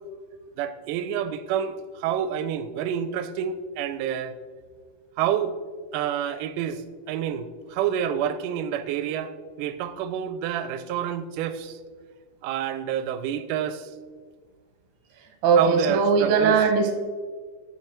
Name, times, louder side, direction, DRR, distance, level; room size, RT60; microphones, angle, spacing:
voice 1, 0.6-4.4 5.2-5.5 5.9-6.8 7.1-9.3 9.6-11.8 12.4-13.8 15.6-16.6, right 9 dB, 90° right, 12 dB, 2.1 m, -28 dB
voice 2, 15.4-16.9, right 5 dB, 60° right, 4 dB, 1.5 m, -19 dB
10.0 x 4.7 x 4.4 m, 1.5 s
omnidirectional pair, 3.6 m